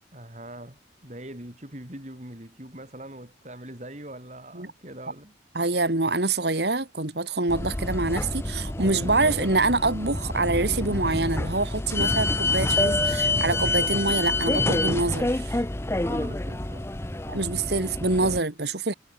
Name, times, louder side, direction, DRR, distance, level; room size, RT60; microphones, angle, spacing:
voice 1, 0.1-5.4 16.0-17.2, right 1 dB, 40° right, 5.4 m, -42 dB
voice 2, 5.5-15.6 17.3-18.9, right 3 dB, 65° right, 2.5 m, -25 dB
sound 1, 7.5-18.4, left 2 dB, 15° left, 0.6 m, -27 dB
head